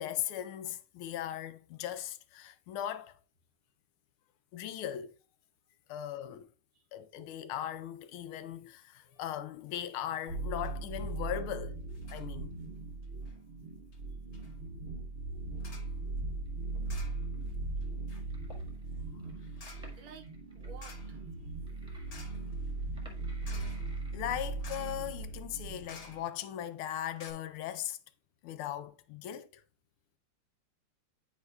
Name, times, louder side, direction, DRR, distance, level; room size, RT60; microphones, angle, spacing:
voice 1, 0.0-3.1 4.5-5.1 5.9-6.5 6.9-11.8 12.1-12.5 24.1-28.0 28.4-29.6, left 11 dB, 80° left, 1.4 m, -38 dB
sound 1, 9.0-9.4 9.7-9.9 10.2-10.3 10.6-11.1 11.9-12.3 13.0-13.4 13.9-14.0 14.3-14.6 15.6-16.0 16.9-17.5 17.8-26.6 26.9-27.0 27.2-27.3, left 4 dB, 45° left, 0.9 m, -55 dB
sound 2, 10.3-26.2, right 3 dB, 45° right, 0.8 m, -39 dB
voice 2, 15.7-16.0 18.8-18.9 19.9-21.2 23.5-23.6, right 5 dB, 70° right, 1.4 m, -54 dB
sound 3, 16.5-17.5 18.1-18.8 19.2-20.7 21.1-21.2 21.5-22.3 22.7-24.2, equal, 5° right, 1.0 m, -57 dB
9.6 x 4.6 x 2.3 m
omnidirectional pair, 2.4 m